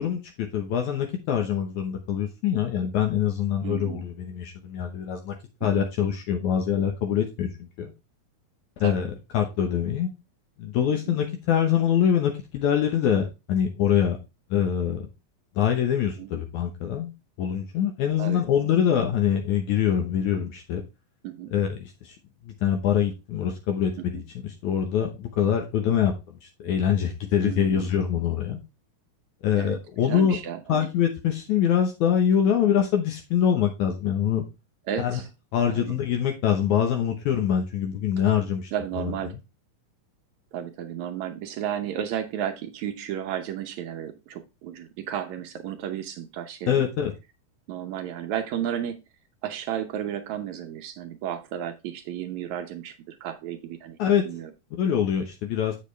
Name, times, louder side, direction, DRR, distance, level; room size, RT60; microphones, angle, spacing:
voice 1, 0.0-5.3 5.6-7.5 7.8-7.9 8.8-9.1 9.3-10.1 10.6-14.2 14.5-15.1 15.6-17.1 17.4-20.8 21.5-22.2 22.4-26.1 26.4-28.6 29.4-30.4 30.7-34.4 35.0-35.2 35.5-38.7 39.0-39.1 46.7-47.1 54.0-54.3 54.8-55.8, left 9 dB, 70° left, 4 dB, 2.2 m, -24 dB
voice 2, 3.6-4.0 5.6-5.8 8.8-9.1 11.1-11.2 16.2-16.3 18.2-18.4 21.2-21.5 24.0-24.2 27.4-27.9 29.6-29.8 30.0-30.9 32.7-32.8 34.9-35.3 35.6-36.0 38.7-39.3 40.5-46.9 47.7-49.0 49.4-54.0 54.2-54.5, right 10 dB, 75° right, 8 dB, 1.8 m, -33 dB
7.8 x 6.5 x 3.2 m, 0.25 s
omnidirectional pair, 3.9 m